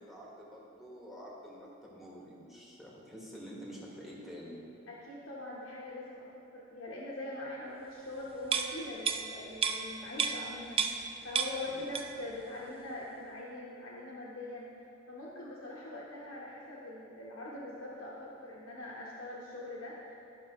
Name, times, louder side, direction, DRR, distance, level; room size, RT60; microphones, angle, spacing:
voice 1, 0.0-4.6 11.6-11.9, equal, ahead, -5 dB, 1.5 m, -48 dB
voice 2, 4.9-14.7 15.1-20.1, left 1 dB, 85° left, -6 dB, 1.1 m, -43 dB
sound 1, 8.4-11.1 11.3-12.3 12.6-12.8, right 6 dB, 30° right, 0.4 m, -33 dB
13.5 x 5.4 x 3.1 m, 2.7 s
head